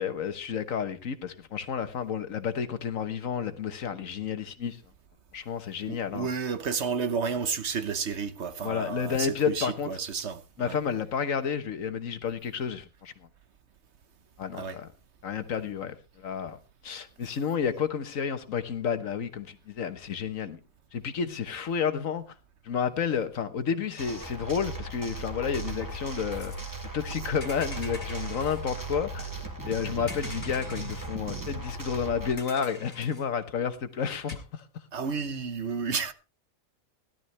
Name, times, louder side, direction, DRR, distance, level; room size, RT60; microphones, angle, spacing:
voice 1, 0.0-4.8 5.3-6.3 8.6-9.9 10.6-13.1 14.4-14.9 15.2-16.6 16.8-20.6 20.9-22.2 22.6-26.5 26.9-29.3 29.6-34.6, left 7 dB, 75° left, 1.6 m, -31 dB
voice 2, 5.9-10.8 14.5-14.8 34.9-36.1, right 5 dB, 55° right, 1.2 m, -31 dB
sound 1, 24.0-32.3, right 2 dB, 15° right, 2.6 m, -37 dB
sound 2, 25.7-25.9 26.3-27.1 27.4-28.7 30.1-31.1 31.8-31.9 32.4-33.3 34.3-34.4, left 2 dB, 45° left, 2.4 m, -45 dB
17.0 x 12.0 x 3.3 m
omnidirectional pair, 1.4 m